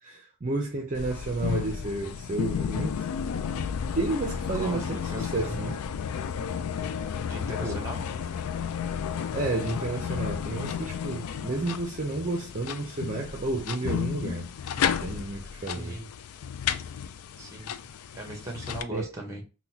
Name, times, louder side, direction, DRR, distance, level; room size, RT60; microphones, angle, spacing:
voice 1, 0.0-2.9 3.9-5.8 7.6-7.8 9.3-14.4 14.8-16.0 18.9-19.1, right 2 dB, 35° right, 0.5 m, -31 dB
sound 1, 0.9-18.8, left 7 dB, 75° left, 0.3 m, -32 dB
voice 2, 5.1-5.6 7.3-8.0 15.7-16.1 17.4-17.9 18.1-19.4, right 1 dB, 15° right, 0.9 m, -38 dB
3.8 x 2.2 x 2.7 m
head